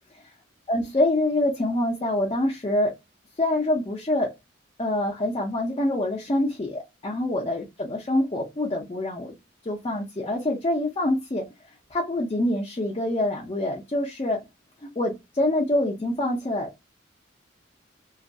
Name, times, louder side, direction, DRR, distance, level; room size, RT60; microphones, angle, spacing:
voice 1, 0.7-2.9 3.4-4.3 4.8-9.3 9.7-11.5 11.9-14.4 14.8-16.7, left 1 dB, 25° left, 0.4 m, -25 dB
2.3 x 2.1 x 2.6 m
head